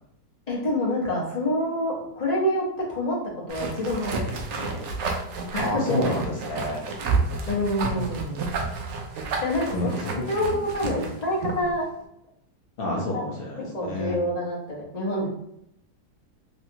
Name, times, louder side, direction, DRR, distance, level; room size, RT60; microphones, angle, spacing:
voice 1, 0.5-3.2 3.5-4.9 5.5-6.2 7.5-8.5 9.4-9.7 10.3-11.9 13.1-13.2 13.6-15.3, left 1 dB, 30° left, -4 dB, 0.8 m, -27 dB
sound 1, 3.5-11.7, right 4 dB, 80° right, 0.6 m, -30 dB
voice 2, 5.5-6.8 9.7-10.6 12.8-14.2, left 1 dB, 90° left, -2 dB, 0.5 m, -29 dB
3.1 x 2.8 x 2.7 m, 0.75 s
omnidirectional pair, 1.8 m